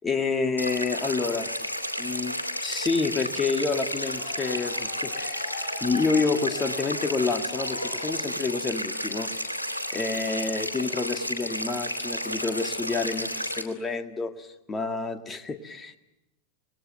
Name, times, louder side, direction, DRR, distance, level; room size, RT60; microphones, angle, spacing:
voice 1, 0.0-1.6 2.0-2.4 2.6-5.5 5.8-9.4 9.9-16.0, left 4 dB, 15° left, 8 dB, 1.9 m, -28 dB
sound 1, 0.6-13.6, equal, 85° left, 2.6 m, -32 dB
sound 2, 3.6-8.6, left 6 dB, 50° left, 6.3 m, -42 dB
27.5 x 20.0 x 9.0 m, 0.90 s
figure-of-eight pair, 90°, 0 cm